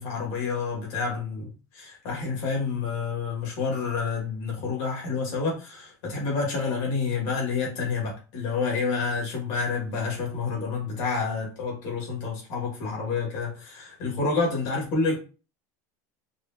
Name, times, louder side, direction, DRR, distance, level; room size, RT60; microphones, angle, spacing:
voice 1, 0.0-1.5 1.7-15.2, left 4 dB, 55° left, 2.1 m, -29 dB
4.8 x 2.5 x 2.9 m
cardioid pair, 160°, 10 cm